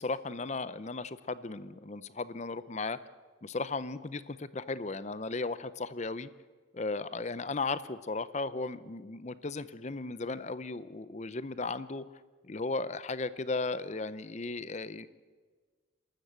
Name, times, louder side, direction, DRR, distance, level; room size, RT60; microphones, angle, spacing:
voice 1, 0.0-3.0 3.4-6.3 6.7-12.0 12.4-15.1, left 3 dB, 35° left, 15 dB, 0.6 m, -36 dB
27.0 x 13.5 x 8.0 m, 1.5 s
head